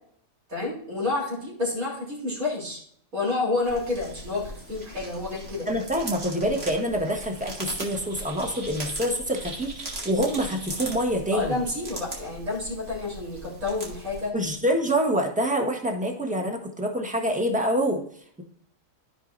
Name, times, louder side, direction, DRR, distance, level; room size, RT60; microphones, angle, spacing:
voice 1, 0.5-2.8 3.1-5.7 11.3-14.3, left 3 dB, 80° right, -5 dB, 3.7 m, -29 dB
sound 1, 3.6-14.3, right 1 dB, 50° right, 2.0 m, -39 dB
voice 2, 5.7-11.6 14.3-18.0, equal, 5° right, 1 dB, 1.2 m, -26 dB
13.5 x 5.2 x 2.6 m, 0.63 s
omnidirectional pair, 1.4 m